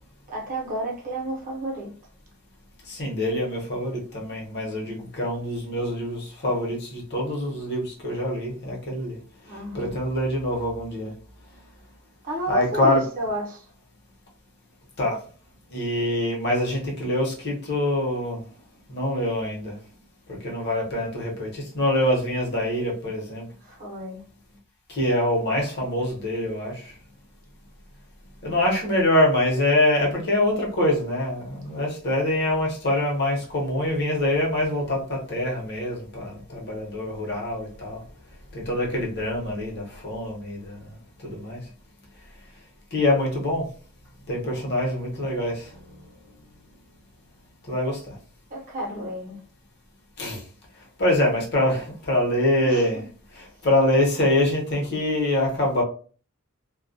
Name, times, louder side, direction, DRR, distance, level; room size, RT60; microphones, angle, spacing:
voice 1, 0.3-1.9 9.5-10.0 12.2-13.6 23.6-24.2 48.5-49.4 52.6-53.0, right 1 dB, 40° right, 0.7 m, -31 dB
voice 2, 2.9-9.2 9.7-11.1 12.5-13.0 15.0-15.2 15.7-18.4 18.9-19.8 20.4-23.5 24.9-26.8 28.4-38.0 38.5-40.8 41.2-41.6 42.9-43.7 44.3-45.7 47.7-48.2 50.2-50.4 51.0-53.0 53.4-55.8, left 1 dB, 55° left, 0.9 m, -25 dB
2.3 x 2.1 x 2.5 m
head